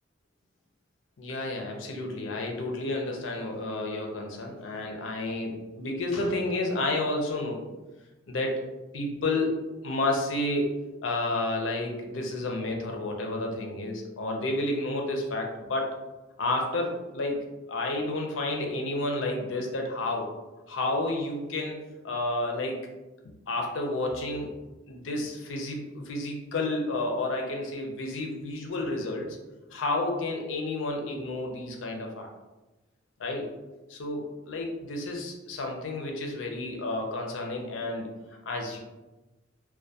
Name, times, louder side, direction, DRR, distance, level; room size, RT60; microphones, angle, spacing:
voice 1, 1.2-7.6 8.3-8.7 8.9-9.5 9.8-16.0 16.4-20.3 20.7-22.8 23.5-24.6 24.9-29.4 29.7-32.3 33.2-33.5 33.9-38.1 38.5-38.8, left 2 dB, 90° left, 1 dB, 0.5 m, -31 dB
2.2 x 2.1 x 2.6 m, 1.1 s
head